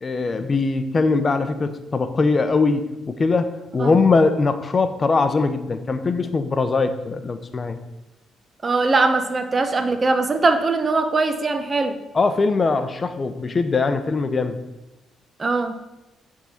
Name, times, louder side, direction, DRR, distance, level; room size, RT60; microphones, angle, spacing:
voice 1, 0.0-7.8 12.1-14.6, left 4 dB, 35° left, 10 dB, 0.7 m, -21 dB
voice 2, 8.6-12.0 15.4-15.8, right 3 dB, 30° right, 8 dB, 0.8 m, -21 dB
9.0 x 3.8 x 5.7 m, 0.99 s
cardioid pair, 90°, 0 cm